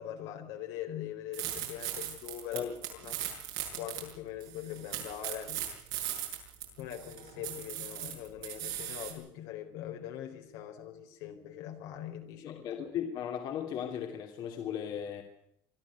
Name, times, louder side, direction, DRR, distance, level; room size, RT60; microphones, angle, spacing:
voice 1, 0.0-3.2 3.7-5.7 6.3-6.4 6.8-12.6, left 10 dB, 85° left, 3 dB, 4.3 m, -42 dB
sound 1, 1.3-4.1 4.4-9.1, right 12 dB, 90° right, 7.5 m, -38 dB
voice 2, 12.4-15.2, left 9 dB, 60° left, 3 dB, 2.8 m, -36 dB
24.5 x 13.0 x 9.5 m, 0.76 s
cardioid pair, 115°, 8 cm